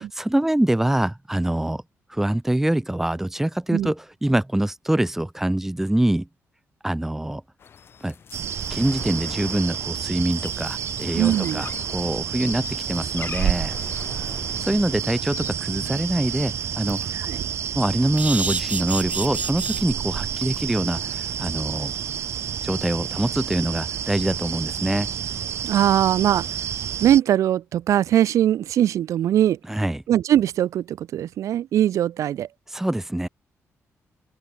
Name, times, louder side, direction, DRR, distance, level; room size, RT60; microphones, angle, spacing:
voice 1, 0.0-1.8 2.1-6.3 6.8-7.4 8.0-8.1 8.7-13.7 14.6-17.1 17.7-21.9 22.6-25.1 29.7-30.0 32.7-33.3, right 1 dB, 5° right, 0.7 m, -24 dB
sound 1, 7.6-15.5, left 7 dB, 50° left, 1.7 m, -41 dB
sound 2, 8.3-27.2, right 9 dB, 60° right, 0.8 m, -29 dB
voice 2, 11.1-11.6 17.3-17.4 25.6-26.4 27.0-29.6 30.1-32.5, right 11 dB, 90° right, 1.1 m, -21 dB
sound 3, 15.9-16.0 16.4-16.5 16.8-17.0 18.2-19.8 20.4-20.6 20.9-21.0 21.3-21.4, right 4 dB, 25° right, 1.6 m, -29 dB
wide cardioid pair, 145°, 5 cm